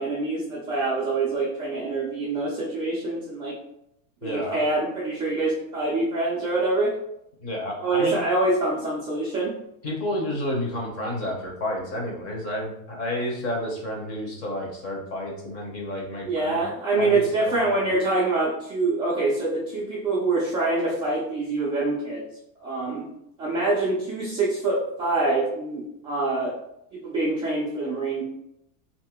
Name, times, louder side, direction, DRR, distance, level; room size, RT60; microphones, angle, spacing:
voice 1, 0.0-3.6 4.2-6.9 7.8-9.5 16.2-22.2 22.6-23.0 23.4-26.5 27.0-28.2, right 2 dB, 15° right, -8 dB, 0.4 m, -25 dB
voice 2, 4.2-4.6 7.4-8.2 9.8-17.9, left 1 dB, 35° left, 0 dB, 0.9 m, -31 dB
2.8 x 2.6 x 3.5 m, 0.79 s
supercardioid pair, 145°, 43 cm